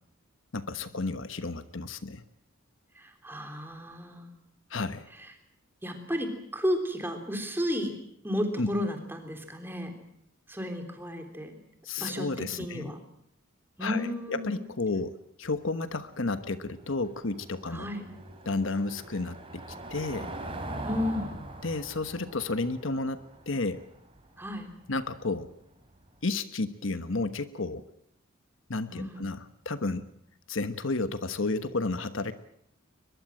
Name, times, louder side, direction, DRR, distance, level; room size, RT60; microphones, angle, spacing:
voice 1, 0.5-2.2 4.7-5.0 8.6-8.7 11.8-12.9 13.8-17.9 18.4-19.6 19.9-20.3 21.6-23.8 24.9-25.5 26.2-27.8 28.7-30.1 30.5-32.3, left 3 dB, 65° left, 11 dB, 1.2 m, -32 dB
voice 2, 3.0-4.3 5.8-7.9 8.2-10.0 10.5-11.6 12.0-13.0 13.8-14.6 17.7-18.1 20.8-21.4 24.4-24.7 28.9-29.2, equal, 10° right, 5 dB, 3.4 m, -33 dB
Car passing by / Engine, 15.4-26.1, right 1 dB, 25° right, 3.9 m, -43 dB
22.5 x 22.0 x 7.6 m, 0.71 s
head